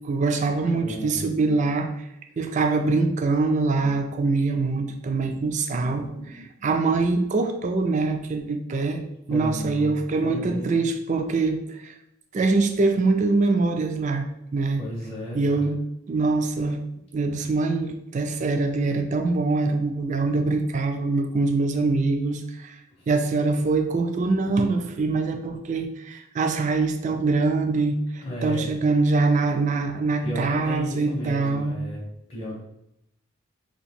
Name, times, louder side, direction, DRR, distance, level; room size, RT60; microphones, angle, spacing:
voice 1, 0.0-2.0 2.4-11.9 12.3-14.8 15.3-15.8 16.1-16.8 17.1-22.7 23.1-31.7, right 3 dB, 35° right, 6 dB, 0.3 m, -24 dB
voice 2, 0.8-1.2 9.3-10.8 14.8-15.6 23.0-23.1 28.2-28.7 30.2-32.0 32.3-32.6, equal, 25° left, -5 dB, 0.6 m, -34 dB
2.9 x 2.5 x 4.1 m, 0.82 s
head